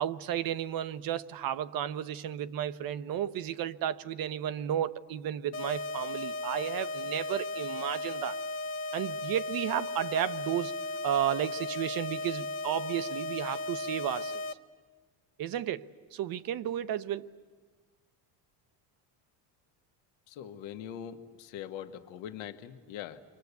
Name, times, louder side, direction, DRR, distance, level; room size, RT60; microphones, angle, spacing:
voice 1, 0.0-8.4 8.9-10.7 11.0-14.4 15.4-15.8 16.1-17.3, right 10 dB, 50° right, 0.9 m, -33 dB
sound 1, 5.5-14.5, left 2 dB, 35° left, 1.1 m, -36 dB
voice 2, 20.3-23.2, left 10 dB, 85° left, 1.5 m, -42 dB
29.0 x 24.0 x 8.2 m
cardioid pair, 125°, 44 cm